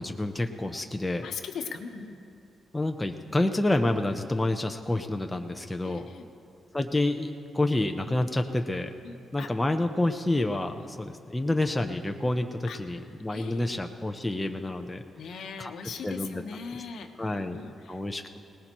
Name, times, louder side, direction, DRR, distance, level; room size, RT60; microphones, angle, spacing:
voice 1, 0.0-1.3 2.7-6.1 6.7-8.9 9.3-15.0 15.6-15.7 16.0-16.4 17.2-17.6 17.9-18.4, left 1 dB, 10° left, 4 dB, 0.6 m, -28 dB
voice 2, 1.2-2.2 5.8-6.3 9.0-9.5 10.8-10.9 12.7-12.8 13.3-13.8 15.2-18.0, left 5 dB, 65° left, 5 dB, 1.0 m, -40 dB
22.5 x 18.5 x 3.0 m, 2.7 s
wide cardioid pair, 165°, 0 cm